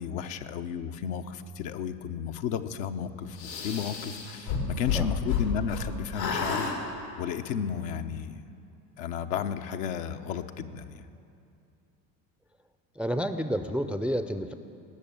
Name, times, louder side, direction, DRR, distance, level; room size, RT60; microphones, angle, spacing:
voice 1, 0.0-6.7 7.2-8.4 9.0-11.0, left 7 dB, 65° left, 7 dB, 0.9 m, -33 dB
sound 1, 3.4-5.8 6.1-6.7, left 6 dB, 80° left, 2.6 m, -30 dB
voice 2, 13.0-14.5, equal, ahead, 9 dB, 0.5 m, -30 dB
19.5 x 6.6 x 8.7 m, 2.6 s
hypercardioid pair, 65°, 49 cm